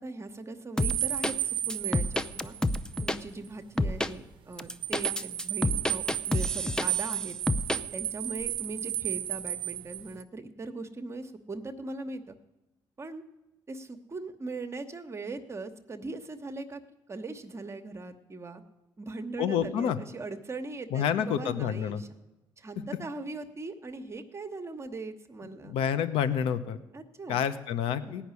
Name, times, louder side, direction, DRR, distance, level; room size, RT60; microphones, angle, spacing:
voice 1, 0.0-2.5 3.0-7.4 7.9-12.3 13.0-13.2 13.7-16.8 17.1-18.6 19.0-22.1 22.6-25.8 26.9-27.4 28.0-28.2, right 3 dB, 30° right, 7 dB, 1.0 m, -40 dB
sound 1, 0.8-1.3 1.7-3.2 3.8-4.1 4.6-7.1 7.5-7.8, left 1 dB, 10° left, 0.6 m, -28 dB
sound 2, 0.8-3.1 3.4-3.5 4.5-10.2, right 12 dB, 65° right, 0.5 m, -33 dB
voice 2, 19.4-20.0 20.9-22.0 25.6-26.8 27.3-28.2, left 8 dB, 85° left, 13 dB, 0.8 m, -28 dB
17.0 x 5.8 x 9.6 m, 1.0 s
cardioid pair, 80°, 9 cm